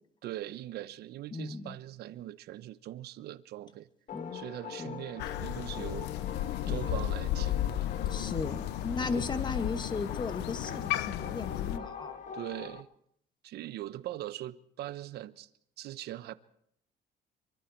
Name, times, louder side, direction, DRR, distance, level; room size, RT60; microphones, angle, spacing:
voice 1, 0.2-3.9 4.3-6.2 6.7-7.9 9.1-9.3 12.3-12.9 13.4-15.5 15.8-16.3, right 14 dB, 70° right, 1.0 m, -41 dB
voice 2, 1.3-1.7 4.1-4.5 4.8-5.0 6.6-6.9 8.0-12.2, left 4 dB, 25° left, 2.3 m, -36 dB
sound 1, 4.1-12.8, left 7 dB, 50° left, 1.4 m, -44 dB
Crow, 5.2-11.8, left 13 dB, 90° left, 0.9 m, -34 dB
25.5 x 24.0 x 4.6 m
cardioid pair, 110°, 17 cm